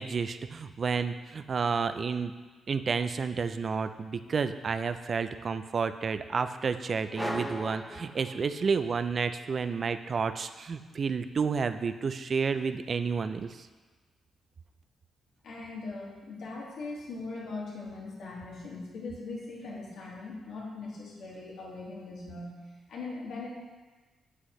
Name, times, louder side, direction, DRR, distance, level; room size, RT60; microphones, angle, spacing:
voice 1, 0.0-2.3 2.7-13.7, right 5 dB, 45° right, 10 dB, 0.4 m, -30 dB
sound 1, 7.1-8.9, equal, 5° left, 0.6 m, -37 dB
voice 2, 15.4-22.5 22.9-23.5, left 3 dB, 80° left, -4 dB, 1.9 m, -40 dB
7.7 x 6.3 x 3.1 m, 1.3 s
cardioid pair, 90°, 0 cm